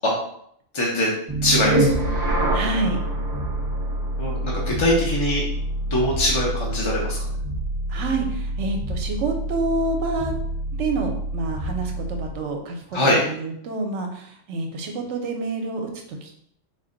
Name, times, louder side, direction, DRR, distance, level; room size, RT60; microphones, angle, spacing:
voice 1, 0.7-1.1 1.4-1.9 4.2-5.4 5.9-7.3 12.9-13.2, left 1 dB, 35° left, -3 dB, 0.5 m, -22 dB
sound 1, 1.3-12.4, right 1 dB, 35° right, 0.3 m, -26 dB
voice 2, 2.5-3.0 7.9-10.3 10.7-16.3, right 3 dB, 70° right, 3 dB, 1.0 m, -28 dB
3.9 x 2.2 x 3.8 m, 0.69 s
omnidirectional pair, 1.3 m